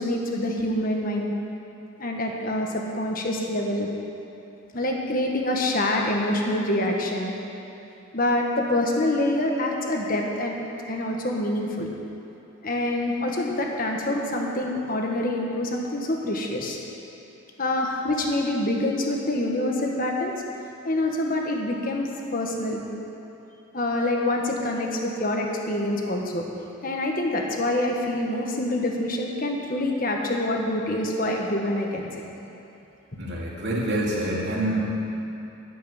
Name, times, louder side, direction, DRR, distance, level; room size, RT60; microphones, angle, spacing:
voice 1, 0.0-1.3 2.0-3.9 4.7-7.3 8.1-10.6 10.9-11.9 12.6-16.8 17.6-20.3 20.8-22.8 23.7-26.4 26.8-32.3, left 1 dB, 45° left, 0 dB, 1.4 m, -26 dB
voice 2, 33.2-35.0, right 1 dB, 55° right, -5 dB, 2.2 m, -26 dB
10.5 x 7.9 x 9.1 m, 2.9 s
head